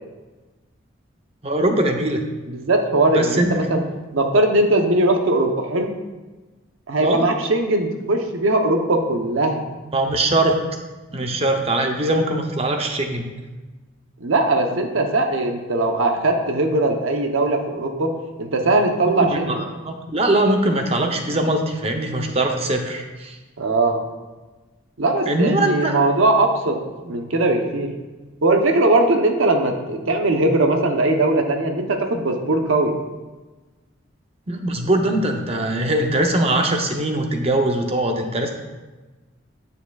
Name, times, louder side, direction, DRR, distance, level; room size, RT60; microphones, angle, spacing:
voice 1, 1.4-2.2 3.1-3.8 7.0-7.3 9.9-10.6 11.1-13.3 19.0-23.4 25.3-26.0 34.5-38.5, right 1 dB, 30° right, 4 dB, 0.7 m, -21 dB
voice 2, 2.5-3.8 4.1-5.9 6.9-9.6 14.2-19.6 23.6-24.0 25.0-27.9 28.4-33.0, right 2 dB, 80° right, 4 dB, 0.8 m, -20 dB
9.5 x 6.8 x 2.3 m, 1.2 s
head